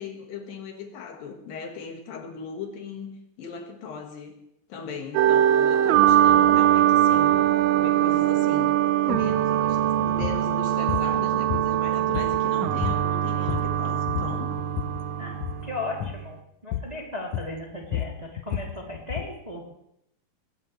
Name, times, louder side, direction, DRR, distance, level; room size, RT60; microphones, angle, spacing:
voice 1, 0.0-4.4 4.7-7.4 7.7-8.8 9.0-14.5, left 5 dB, 70° left, 4 dB, 3.3 m, -38 dB
sound 1, 5.1-16.2, right 11 dB, 75° right, 2.3 m, -22 dB
sound 2, 10.2-10.4 10.9-11.1 11.5-12.5 12.8-13.1 13.3-13.8 14.1-15.0 15.3-15.6 16.0-16.2 16.7-17.0 17.3-19.4, left 12 dB, 90° left, 1.6 m, -31 dB
voice 2, 15.2-16.4 16.6-19.6, left 2 dB, 10° right, -2 dB, 2.3 m, -36 dB
21.0 x 18.0 x 3.2 m, 0.79 s
omnidirectional pair, 4.2 m